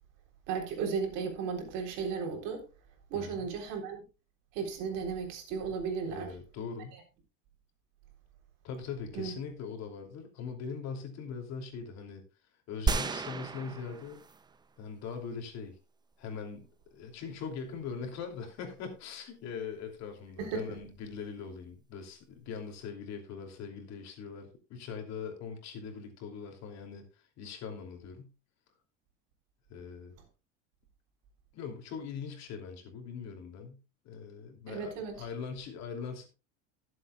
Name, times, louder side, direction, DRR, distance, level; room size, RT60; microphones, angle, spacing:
voice 1, 0.5-2.6 3.1-4.0 4.5-6.3 9.1-9.3 20.4-20.8 34.7-35.3, right 6 dB, 60° right, 3.7 m, -35 dB
voice 2, 3.1-3.5 6.1-7.0 8.6-12.2 12.7-14.2 14.8-15.8 16.2-28.3 29.7-30.1 31.5-36.3, left 6 dB, 50° left, 2.9 m, -41 dB
sound 1, 12.9-14.6 15.1-15.2, right 4 dB, 10° right, 0.5 m, -33 dB
19.0 x 7.8 x 2.3 m
supercardioid pair, 135°, 36 cm